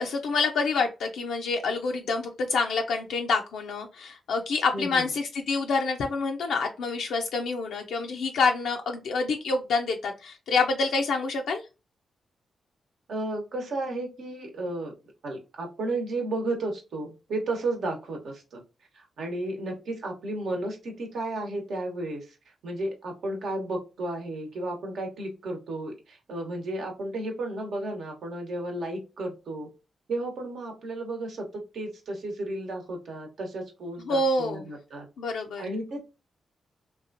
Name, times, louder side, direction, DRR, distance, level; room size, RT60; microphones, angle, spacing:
voice 1, 0.0-11.6 34.1-34.6 35.2-35.7, left 3 dB, 80° left, 2 dB, 0.4 m, -27 dB
voice 2, 4.7-5.1 13.1-14.9 15.2-18.6 18.9-22.4 22.6-29.7 30.1-35.1 35.6-36.1, right 2 dB, 75° right, 2 dB, 1.0 m, -33 dB
3.0 x 2.3 x 2.5 m, 0.28 s
supercardioid pair, 45°, 0 cm